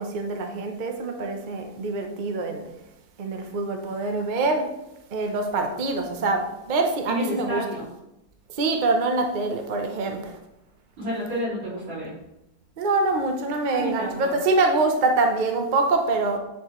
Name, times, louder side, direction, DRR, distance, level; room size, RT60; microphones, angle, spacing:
voice 1, 0.0-2.7 3.2-4.7 5.1-7.6 8.5-10.4 12.8-16.4, right 3 dB, 50° right, 4 dB, 0.5 m, -25 dB
voice 2, 7.1-7.9 11.0-12.1 13.8-14.3, equal, 85° right, -8 dB, 3.7 m, -30 dB
9.2 x 4.7 x 3.1 m, 0.89 s
omnidirectional pair, 2.0 m